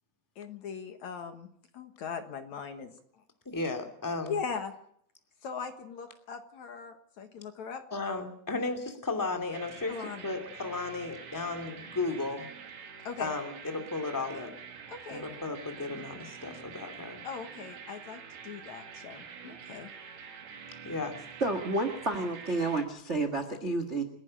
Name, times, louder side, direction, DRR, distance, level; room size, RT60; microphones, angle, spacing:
voice 1, 0.4-1.5 1.7-2.9 4.3-4.7 5.4-7.8 9.9-10.3 13.0-13.3 14.9-15.3 17.2-19.9, left 6 dB, 55° left, 6 dB, 2.4 m, -39 dB
voice 2, 3.4-4.4 7.9-12.5 13.2-14.5 15.1-17.2 20.8-21.2, left 3 dB, 5° left, 4 dB, 1.7 m, -34 dB
sound 1, 9.5-22.9, right 6 dB, 75° right, 4.5 m, -47 dB
voice 3, 21.4-24.0, right 2 dB, 50° right, 7 dB, 0.8 m, -30 dB
29.0 x 11.0 x 8.9 m, 0.67 s
omnidirectional pair, 4.5 m